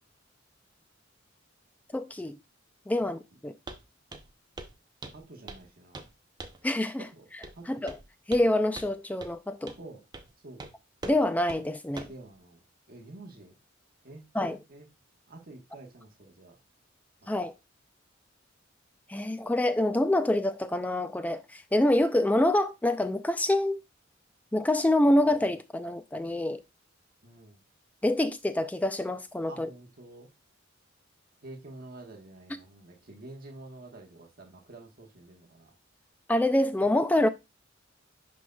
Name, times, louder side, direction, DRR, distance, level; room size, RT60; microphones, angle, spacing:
voice 1, 1.9-2.4 2.9-3.5 6.6-7.1 7.7-8.0 8.3-9.7 11.0-12.1 14.3-14.6 17.3-17.5 19.1-23.8 24.5-26.6 28.0-29.7 36.3-37.3, left 1 dB, 10° left, 0.3 m, -26 dB
Walk footsteps, 3.7-3.8 4.1-4.3 4.6-4.8 5.0-5.7 5.9-6.1 6.4-6.7 7.4-7.6 7.9-8.5 8.8-8.9 9.2-9.3 9.7-9.8 10.1-10.3 10.6-10.7 11.0-11.2 11.5-11.6 12.0-12.2, right 2 dB, 20° right, 0.7 m, -42 dB
voice 2, 5.1-6.1 7.0-7.3 7.5-7.8 9.8-10.0 10.4-10.7 12.0-13.5 14.0-14.9 15.3-16.6 17.2-17.4 27.2-27.6 29.4-30.3 31.4-35.7, right 2 dB, 50° right, 1.3 m, -48 dB
11.0 x 3.9 x 2.3 m
head